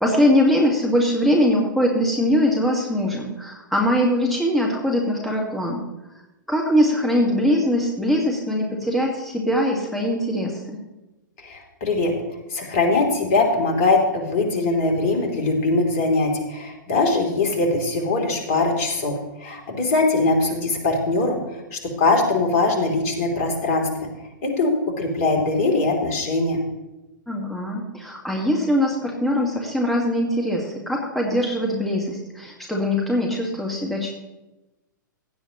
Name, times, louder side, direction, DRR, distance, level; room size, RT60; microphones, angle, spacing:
voice 1, 0.0-5.8 6.5-10.8 27.3-34.1, left 1 dB, ahead, -1 dB, 1.6 m, -22 dB
voice 2, 11.4-12.1 12.5-21.4 21.7-23.9 24.4-24.7 25.0-26.6, left 3 dB, 45° left, 1 dB, 3.0 m, -21 dB
16.5 x 10.0 x 3.0 m, 1.0 s
figure-of-eight pair, 110°, 11 cm